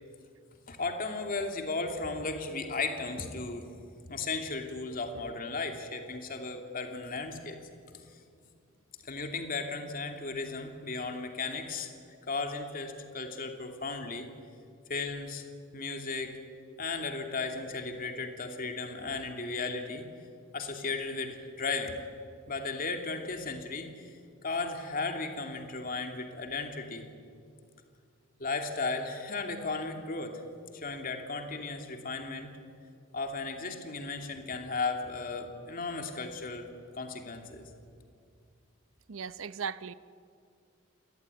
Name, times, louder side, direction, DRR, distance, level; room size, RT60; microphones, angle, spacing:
voice 1, 0.7-3.7 4.1-7.6 9.0-11.9 12.3-14.3 14.9-15.4 15.7-16.4 16.8-20.0 20.5-22.0 22.5-24.1 24.4-27.0 28.4-30.4 30.7-32.5 33.1-36.7 36.9-37.6, left 3 dB, 45° left, 4 dB, 2.8 m, -35 dB
voice 2, 39.1-39.9, right 6 dB, 80° right, 15 dB, 0.8 m, -37 dB
28.5 x 19.5 x 9.7 m, 2.3 s
head